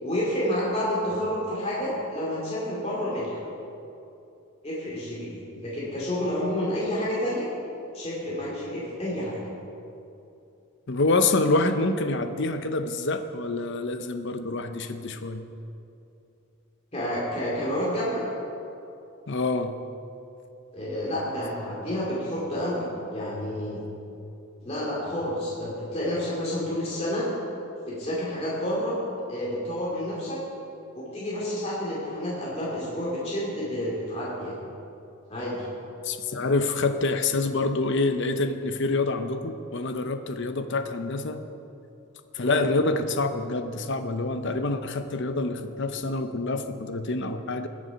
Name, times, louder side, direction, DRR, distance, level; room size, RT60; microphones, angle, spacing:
voice 1, 0.0-3.4 4.6-7.5 7.9-9.4 16.9-18.2 20.7-23.8 24.6-27.3 27.9-28.9 29.3-30.4 30.9-34.5 35.3-35.6 42.4-42.6, equal, 25° left, -7 dB, 2.5 m, -29 dB
voice 2, 10.9-15.5 19.3-19.8 36.0-41.4 42.3-47.7, left 3 dB, 50° left, 8 dB, 0.7 m, -26 dB
20.5 x 7.1 x 5.1 m, 2.8 s
head